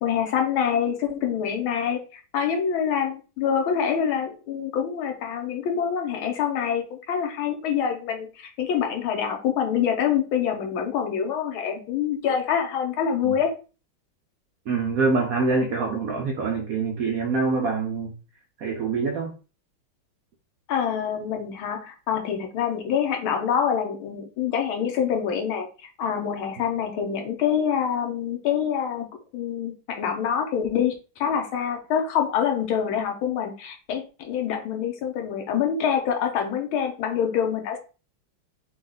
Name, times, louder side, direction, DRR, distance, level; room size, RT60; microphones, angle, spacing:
voice 1, 0.0-13.5 20.7-25.7 26.0-29.1 29.3-37.8, left 8 dB, 80° left, 4 dB, 1.7 m, -26 dB
voice 2, 14.7-18.1 18.6-19.3, right 4 dB, 80° right, 2 dB, 0.8 m, -25 dB
4.5 x 2.4 x 3.9 m, 0.34 s
omnidirectional pair, 2.3 m